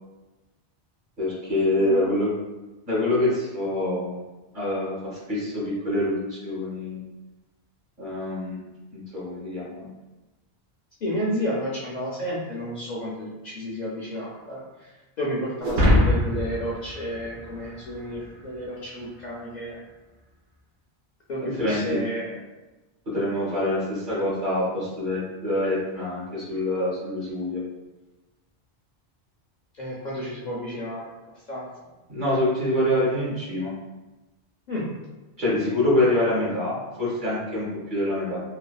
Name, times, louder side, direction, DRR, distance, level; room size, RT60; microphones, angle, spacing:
voice 1, 1.2-2.3 2.9-4.2 4.5-7.0 8.0-8.6 8.9-9.9 21.4-22.0 23.1-27.6 32.1-33.7 35.4-38.4, left 1 dB, 50° right, -7 dB, 1.2 m, -25 dB
voice 2, 11.0-19.8 21.3-22.3 29.8-31.0 31.5-31.7 34.7-34.9, equal, 55° left, -6 dB, 0.5 m, -31 dB
sound 1, 15.6-18.1, left 1 dB, 85° right, 1.0 m, -22 dB
3.3 x 2.3 x 2.2 m, 1.1 s
omnidirectional pair, 1.1 m